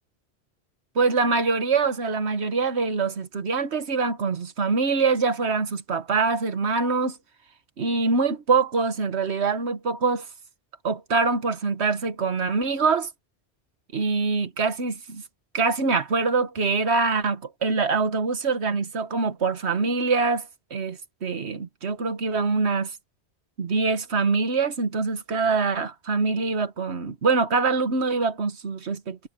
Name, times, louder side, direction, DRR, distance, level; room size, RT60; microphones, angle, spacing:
voice 1, 0.9-7.2 7.8-10.3 10.8-13.1 13.9-15.2 15.5-22.9 23.6-29.2, right 4 dB, 75° right, 1.6 m, -24 dB
omnidirectional pair, 1.1 m